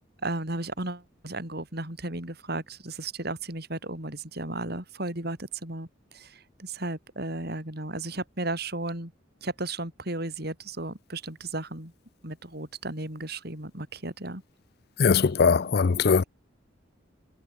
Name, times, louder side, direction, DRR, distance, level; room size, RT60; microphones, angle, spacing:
voice 1, 0.2-9.1 9.4-11.9 12.2-14.4, right 2 dB, 55° right, 6.3 m, -34 dB
voice 2, 15.0-16.2, left 5 dB, 55° left, 0.5 m, -21 dB
head